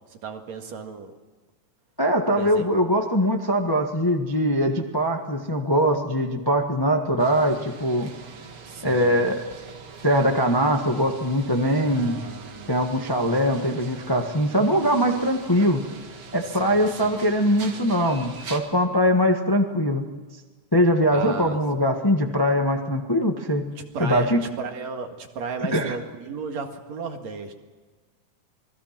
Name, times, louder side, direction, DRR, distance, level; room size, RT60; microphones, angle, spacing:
voice 1, 0.1-1.1 2.3-2.7 8.6-9.3 11.8-12.8 16.5-17.2 21.1-21.6 23.8-27.5, right 5 dB, 70° right, 4 dB, 3.1 m, -35 dB
voice 2, 2.0-8.1 8.8-9.4 10.0-12.2 12.7-15.8 16.3-20.0 20.7-23.6 24.0-24.4 25.7-25.9, equal, 15° left, 3 dB, 0.9 m, -22 dB
sound 1, 7.2-18.6, right 5 dB, 50° right, 2.5 m, -43 dB
27.5 x 21.0 x 6.0 m, 1.4 s
omnidirectional pair, 3.3 m